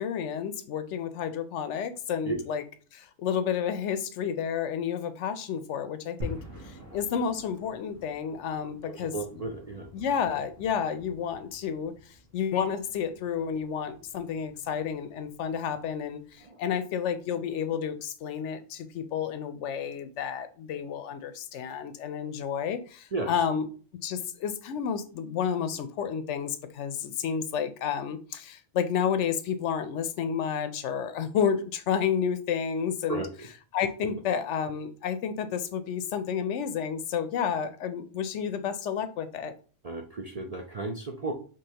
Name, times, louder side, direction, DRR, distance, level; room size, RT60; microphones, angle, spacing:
voice 1, 0.0-2.6 2.9-6.4 6.6-9.4 9.9-11.9 12.3-23.7 24.0-33.2 33.7-39.5, left 7 dB, 75° left, 0.9 m, -31 dB
sound 1, 6.2-16.5, left 1 dB, 75° right, 1.9 m, -47 dB
voice 2, 8.8-9.9 16.5-16.6 23.1-23.3 33.1-33.3 39.8-41.3, right 3 dB, 50° right, 0.4 m, -33 dB
5.3 x 3.4 x 2.8 m
omnidirectional pair, 1.3 m